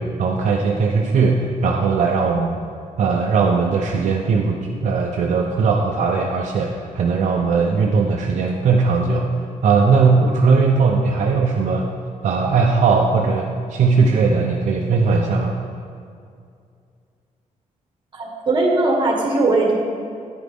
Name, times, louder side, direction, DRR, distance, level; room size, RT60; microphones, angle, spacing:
voice 1, 0.0-2.6 3.0-9.3 9.6-11.9 12.2-15.6, right 4 dB, 60° right, 0 dB, 0.7 m, -18 dB
voice 2, 18.1-19.8, right 2 dB, 35° right, 0 dB, 1.6 m, -19 dB
10.5 x 9.8 x 3.6 m, 2.3 s
wide cardioid pair, 170°, 13 cm